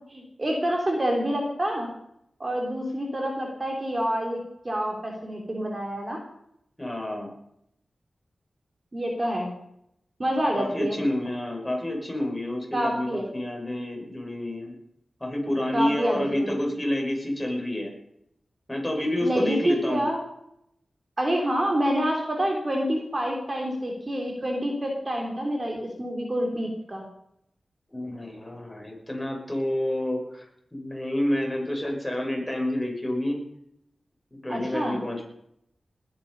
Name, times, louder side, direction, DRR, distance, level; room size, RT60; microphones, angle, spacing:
voice 1, 0.0-1.9 2.4-6.2 8.9-9.5 10.2-11.0 12.7-13.3 15.7-16.6 19.2-20.2 21.2-27.0 34.5-35.0, equal, 35° right, 1 dB, 3.5 m, -27 dB
voice 2, 6.8-7.3 10.4-14.7 15.2-17.9 18.7-20.1 27.9-33.4 34.3-35.2, left 1 dB, 10° left, -1 dB, 6.2 m, -29 dB
20.0 x 9.6 x 5.5 m, 0.76 s
cardioid pair, 60°, 0 cm